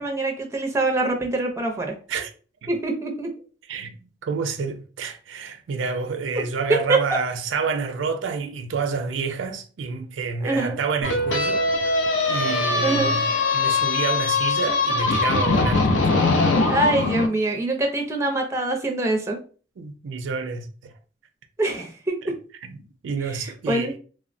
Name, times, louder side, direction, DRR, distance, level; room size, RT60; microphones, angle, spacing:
voice 1, 0.0-2.0 2.7-3.3 6.4-6.5 6.9-7.0 10.4-10.8 12.8-13.2 16.6-19.4 21.6-22.4 23.2-23.9, right 2 dB, 15° right, 0.4 m, -24 dB
voice 2, 3.7-12.0 12.3-13.3 13.5-15.9 19.8-20.9 22.2-22.3 22.6-22.8 23.0-24.0, right 5 dB, 85° right, 0.4 m, -29 dB
sound 1, 11.0-17.3, left 3 dB, 85° left, 0.4 m, -21 dB
3.1 x 2.0 x 2.5 m
head